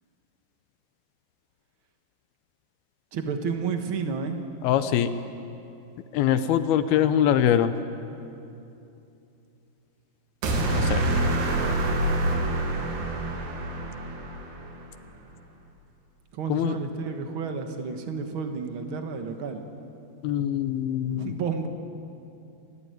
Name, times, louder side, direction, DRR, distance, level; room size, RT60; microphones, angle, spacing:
voice 1, 3.1-4.4 16.3-19.6 21.2-21.7, right 5 dB, 70° right, 5 dB, 1.2 m, -31 dB
voice 2, 4.6-5.1 6.1-7.7 10.7-11.0 16.5-16.8 20.2-21.4, left 10 dB, 75° left, 11 dB, 2.6 m, -23 dB
sound 1, 10.4-14.7, right 1 dB, 85° right, 4.5 m, -26 dB
29.5 x 14.0 x 9.4 m, 2.7 s
omnidirectional pair, 4.6 m